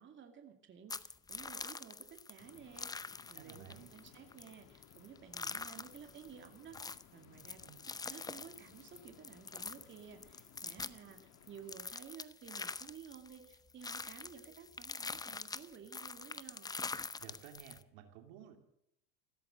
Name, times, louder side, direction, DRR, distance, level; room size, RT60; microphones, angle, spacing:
voice 1, 0.0-7.8 8.1-16.7, right 7 dB, 35° right, 5 dB, 2.4 m, -54 dB
sound 1, 0.9-17.8, left 4 dB, 10° left, 0.6 m, -45 dB
sound 2, 2.4-11.8, left 9 dB, 50° left, 1.6 m, -62 dB
voice 2, 3.3-3.9 17.2-18.6, right 10 dB, 75° right, 5 dB, 2.8 m, -54 dB
15.5 x 13.0 x 6.5 m, 0.75 s
supercardioid pair, 110°, 34 cm